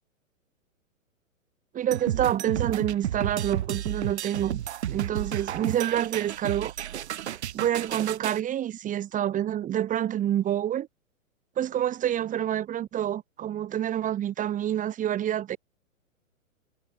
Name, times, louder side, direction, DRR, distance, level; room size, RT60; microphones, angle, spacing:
voice 1, 1.7-4.6 4.9-6.7 7.5-10.9 11.6-15.6, right 11 dB, 20° right, 3.0 m, -27 dB
sound 1, 1.9-8.4, right 11 dB, 55° right, 4.3 m, -32 dB
figure-of-eight pair, 115°, 40 cm